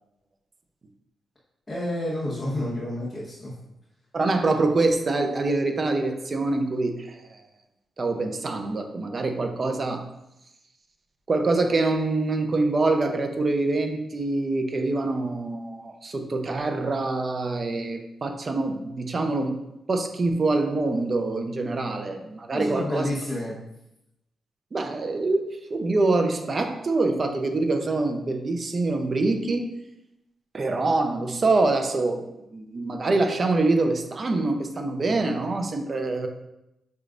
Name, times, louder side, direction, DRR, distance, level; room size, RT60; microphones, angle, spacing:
voice 1, 1.7-3.5 22.5-23.6, left 1 dB, 25° left, -8 dB, 1.3 m, -29 dB
voice 2, 4.1-7.4 8.0-10.1 11.3-19.6 19.9-23.1 24.7-29.7 30.5-32.2 32.5-36.3, right 2 dB, 45° right, 5 dB, 0.6 m, -25 dB
6.1 x 3.3 x 2.5 m, 0.88 s
cardioid pair, 75°, 0 cm